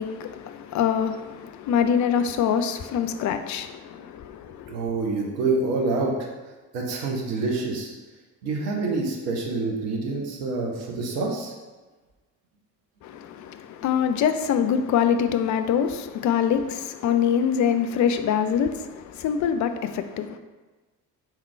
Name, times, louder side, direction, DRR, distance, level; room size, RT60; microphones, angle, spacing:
voice 1, 0.0-4.7 13.0-20.4, left 8 dB, 40° left, 0.4 m, -24 dB
voice 2, 4.7-6.3 6.7-7.9 8.4-11.5, right 3 dB, 75° right, 0.9 m, -27 dB
3.6 x 3.0 x 4.3 m
figure-of-eight pair, 40°, 48 cm